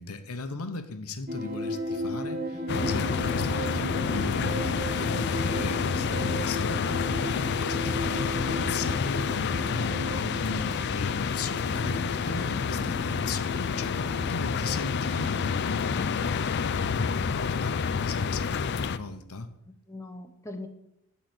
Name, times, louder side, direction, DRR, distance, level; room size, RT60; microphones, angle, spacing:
voice 1, 0.0-19.5, left 3 dB, 80° left, 0.9 m, -38 dB
sound 1, 1.3-15.5, equal, 45° right, 1.0 m, -36 dB
voice 2, 2.5-2.9 6.7-7.0 15.9-16.1 19.9-20.7, left 1 dB, 15° left, 0.8 m, -39 dB
sound 2, 2.7-19.0, left 6 dB, 50° left, 0.4 m, -29 dB
11.5 x 4.1 x 7.8 m
head